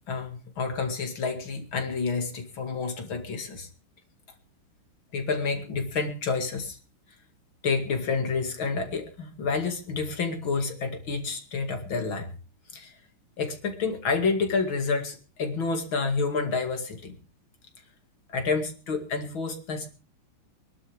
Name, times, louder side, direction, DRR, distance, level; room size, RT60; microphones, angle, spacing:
voice 1, 0.0-3.7 5.1-6.8 7.6-12.3 12.7-12.9 13.4-17.1 18.3-19.9, left 4 dB, 70° left, 4 dB, 3.1 m, -29 dB
25.0 x 12.0 x 3.5 m, 0.36 s
omnidirectional pair, 2.3 m